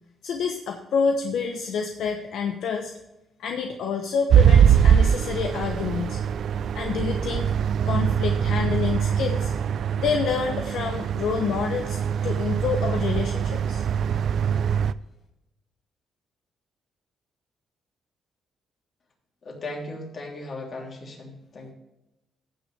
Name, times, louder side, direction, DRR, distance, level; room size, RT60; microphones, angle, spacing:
voice 1, 0.2-2.9 3.4-6.2 6.7-7.5 7.8-9.5 10.0-12.0 12.2-13.8, left 6 dB, 75° left, 4 dB, 0.9 m, -28 dB
sound 1, 4.3-14.9, right 8 dB, 65° right, 0.4 m, -22 dB
voice 2, 19.4-21.7, left 2 dB, 45° left, -1 dB, 3.4 m, -37 dB
15.0 x 6.5 x 3.4 m, 0.92 s
cardioid pair, 90°, 0 cm